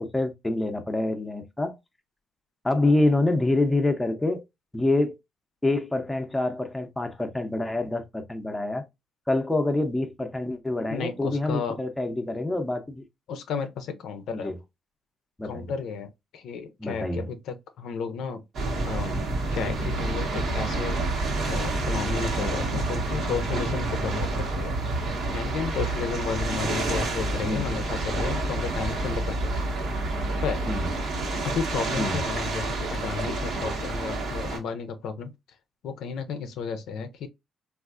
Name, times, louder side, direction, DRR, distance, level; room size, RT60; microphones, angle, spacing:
voice 1, 0.0-1.8 2.6-4.4 4.7-5.2 5.6-8.8 9.3-13.0 14.3-14.5 15.4-15.7 16.8-17.2 27.3-27.6 30.7-30.9 32.0-32.2, left 2 dB, 10° left, 0.6 m, -26 dB
voice 2, 10.9-11.8 13.3-14.5 15.4-18.4 18.8-19.2 19.5-21.0 21.5-24.8 25.3-29.6 30.4-30.6 31.4-35.3 35.8-37.3, left 6 dB, 80° left, 0.5 m, -33 dB
sound 1, 18.5-34.6, right 2 dB, 70° right, 1.0 m, -28 dB
3.4 x 2.4 x 2.4 m
cardioid pair, 90°, 0 cm